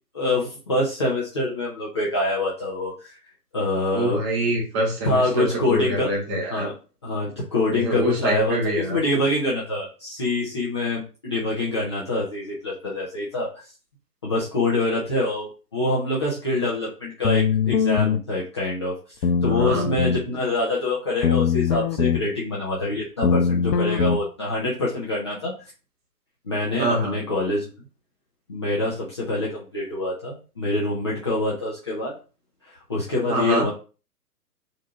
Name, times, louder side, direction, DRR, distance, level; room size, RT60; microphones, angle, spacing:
voice 1, 0.1-3.2 3.5-4.2 5.0-6.1 6.5-6.7 7.0-13.6 14.2-18.9 19.4-25.5 26.4-27.7 28.5-32.2 32.7-33.7, left 2 dB, 20° left, -7 dB, 0.5 m, -25 dB
voice 2, 3.9-6.7 7.7-9.0 19.5-19.9 26.8-27.1 33.3-33.7, right 1 dB, 15° right, -1 dB, 0.8 m, -25 dB
sound 1, 17.2-18.2 19.2-20.2 21.2-22.2 23.2-24.2, left 6 dB, 85° left, 0.7 m, -21 dB
3.9 x 2.7 x 4.3 m, 0.35 s
figure-of-eight pair, 130°, 49 cm